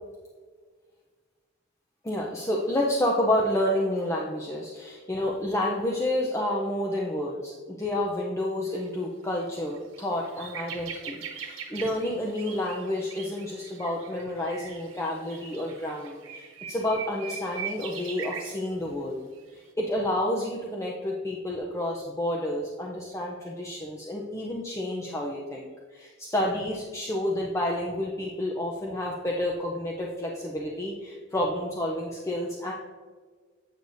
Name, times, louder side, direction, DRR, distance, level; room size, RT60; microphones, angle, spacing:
voice 1, 2.0-19.2 19.5-32.7, left 1 dB, 15° left, -2 dB, 0.5 m, -30 dB
sound 1, 8.7-8.9 9.3-9.4 9.8-18.6 19.4-19.5, right 7 dB, 80° right, 1.0 m, -41 dB
8.2 x 6.5 x 2.6 m, 1.5 s
head